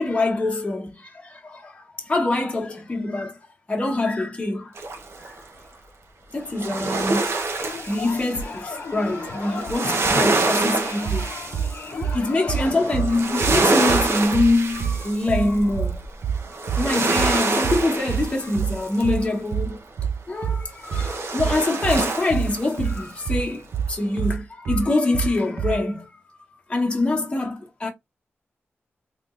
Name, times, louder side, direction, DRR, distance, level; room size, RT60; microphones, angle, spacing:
voice 1, 0.0-3.4 3.7-4.7 5.2-5.3 6.3-11.3 11.7-16.0 16.3-19.8 20.3-26.1 26.7-27.9, left 2 dB, 25° left, 1.1 m, -25 dB
sound 1, 4.8-5.4 6.5-19.3 20.9-23.0 23.4-23.5, right 3 dB, 70° right, 0.8 m, -26 dB
sound 2, 7.6-12.9, left 4 dB, 70° left, 0.6 m, -36 dB
sound 3, 11.0-25.8, right 7 dB, 90° right, 0.4 m, -26 dB
3.6 x 2.9 x 2.4 m
wide cardioid pair, 85°, 5 cm